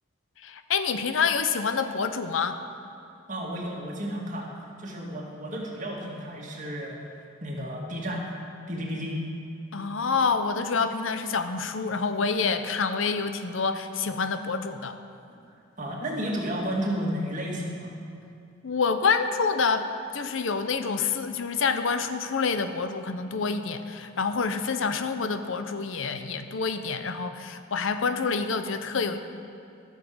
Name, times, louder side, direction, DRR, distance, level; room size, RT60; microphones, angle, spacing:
voice 1, 0.4-2.6 9.7-15.0 18.6-29.2, left 5 dB, 70° left, 9 dB, 0.7 m, -27 dB
voice 2, 3.3-4.5 4.8-8.3 8.7-9.3 15.3-17.9, equal, 40° right, -2 dB, 1.9 m, -32 dB
14.5 x 6.5 x 6.9 m, 2.5 s
head